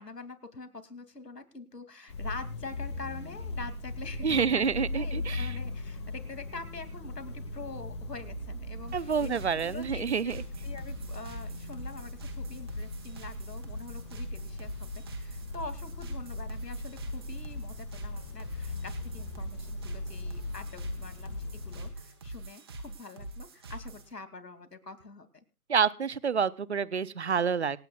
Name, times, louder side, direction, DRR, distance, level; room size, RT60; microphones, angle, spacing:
voice 1, 0.0-25.4, left 3 dB, 90° left, 9 dB, 2.7 m, -45 dB
sound 1, 2.1-21.9, left 2 dB, 20° left, 1.4 m, -39 dB
voice 2, 4.2-5.5 8.9-10.4 25.7-27.8, right 6 dB, 45° right, 19 dB, 0.6 m, -28 dB
sound 2, 8.9-24.1, right 1 dB, 15° right, 1.1 m, -44 dB
26.5 x 9.0 x 2.4 m, 0.28 s
figure-of-eight pair, 160°, 47 cm